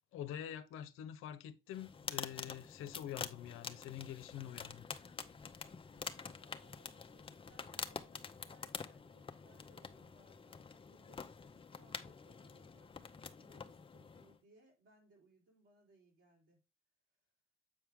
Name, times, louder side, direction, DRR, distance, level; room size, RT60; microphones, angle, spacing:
voice 1, 0.1-4.9, left 10 dB, 80° left, 0.8 m, -46 dB
sound 1, 1.7-14.4, left 5 dB, 25° left, 0.7 m, -47 dB
voice 2, 5.9-11.2 11.7-13.0 13.4-16.6, right 2 dB, 75° right, 4.3 m, -68 dB
7.7 x 4.6 x 3.6 m
supercardioid pair, 80°, 21 cm